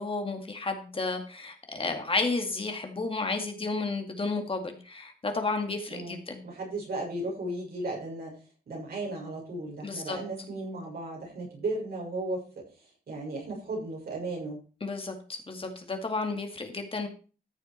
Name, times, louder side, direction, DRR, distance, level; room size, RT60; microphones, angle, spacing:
voice 1, 0.0-6.4 9.8-10.2 14.8-17.1, left 3 dB, 35° left, 4 dB, 2.2 m, -32 dB
voice 2, 5.9-8.3 8.7-12.6 13.1-14.6, right 2 dB, 75° right, -2 dB, 6.5 m, -35 dB
14.0 x 6.9 x 4.6 m, 0.37 s
wide cardioid pair, 105°, 16 cm